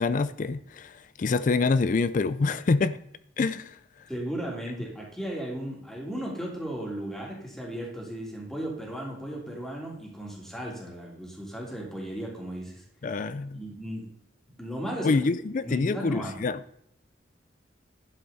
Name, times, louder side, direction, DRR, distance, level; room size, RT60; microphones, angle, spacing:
voice 1, 0.0-3.0 3.4-3.8 13.0-13.6 15.0-16.6, left 4 dB, 45° left, 0.4 m, -26 dB
voice 2, 4.1-12.8 13.5-14.1 14.6-15.1 15.6-16.4, right 1 dB, ahead, 2.8 m, -35 dB
11.5 x 7.5 x 4.1 m
head